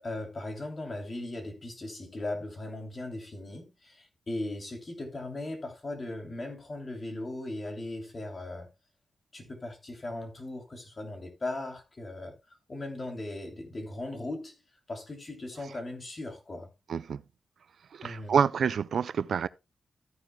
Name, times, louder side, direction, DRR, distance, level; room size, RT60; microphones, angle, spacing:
voice 1, 0.0-8.7 9.3-14.6 14.9-16.7 18.0-18.4, left 2 dB, 30° left, 3.1 m, -38 dB
voice 2, 16.9-17.2 17.9-19.5, right 7 dB, 65° right, 0.4 m, -27 dB
14.0 x 9.1 x 2.3 m
wide cardioid pair, 135°, 0 cm